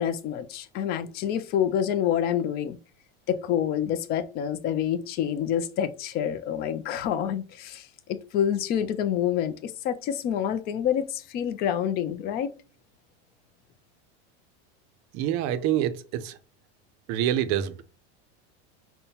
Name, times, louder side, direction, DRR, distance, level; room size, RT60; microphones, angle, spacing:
voice 1, 0.0-2.8 3.3-12.5, left 9 dB, 30° left, 0.4 m, -27 dB
voice 2, 15.1-15.9 16.2-16.3 17.1-17.8, right 11 dB, 45° right, 0.5 m, -25 dB
5.3 x 2.1 x 2.8 m
supercardioid pair, 145°, 32 cm